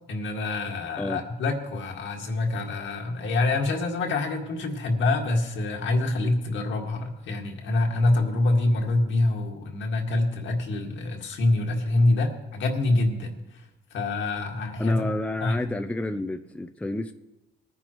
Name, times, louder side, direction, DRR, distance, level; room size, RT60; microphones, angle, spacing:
voice 1, 0.1-15.1 15.4-15.6, left 2 dB, 75° left, 1 dB, 2.0 m, -26 dB
voice 2, 14.8-17.1, left 2 dB, 5° left, 7 dB, 0.6 m, -30 dB
20.0 x 9.7 x 3.1 m, 1.0 s
cardioid pair, 90°, 20 cm